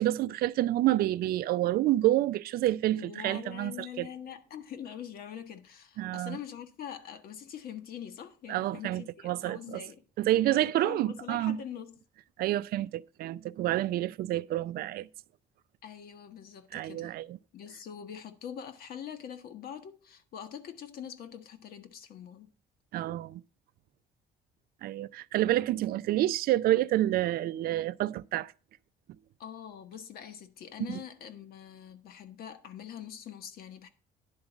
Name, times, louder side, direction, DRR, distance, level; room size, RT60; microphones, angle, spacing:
voice 1, 0.0-4.1 6.0-6.4 8.5-9.8 10.2-11.6 12.4-15.1 16.7-17.4 22.9-23.4 24.8-28.5 30.9-31.0, right 14 dB, 65° right, 0.4 m, -28 dB
voice 2, 2.9-10.0 10.5-11.9 15.8-17.2 17.5-22.5 29.4-33.9, left 8 dB, 65° left, 1.2 m, -44 dB
10.5 x 3.8 x 7.2 m
cardioid pair, 110°, 17 cm